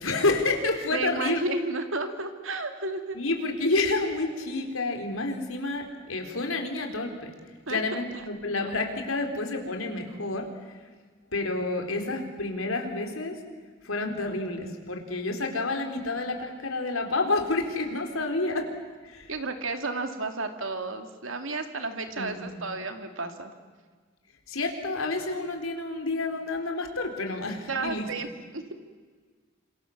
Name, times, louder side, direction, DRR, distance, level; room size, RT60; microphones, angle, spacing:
voice 1, 0.0-1.4 3.1-7.3 7.7-10.8 11.3-13.4 13.8-18.7 19.0-19.3 22.1-22.6 24.5-28.1, left 2 dB, 85° left, 4 dB, 4.3 m, -29 dB
voice 2, 0.9-3.2 7.7-7.8 8.1-8.2 19.3-23.5 27.7-28.7, right 3 dB, 75° right, 6 dB, 2.5 m, -32 dB
28.0 x 27.0 x 7.3 m, 1.5 s
head